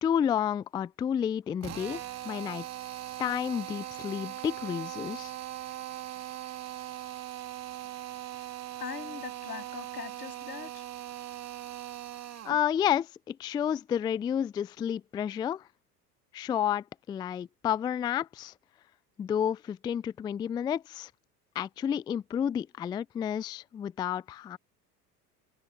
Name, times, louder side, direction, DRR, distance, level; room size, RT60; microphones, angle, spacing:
voice 1, 0.0-2.6 3.2-5.3 12.4-15.6 16.3-18.5 19.2-21.1 21.6-24.6, left 9 dB, 10° left, 0.3 m, -30 dB
Drill, 1.6-12.6, right 13 dB, 35° right, 2.4 m, -40 dB
voice 2, 8.8-10.8, left 7 dB, 80° left, 7.8 m, -41 dB
figure-of-eight pair, 75°, 46 cm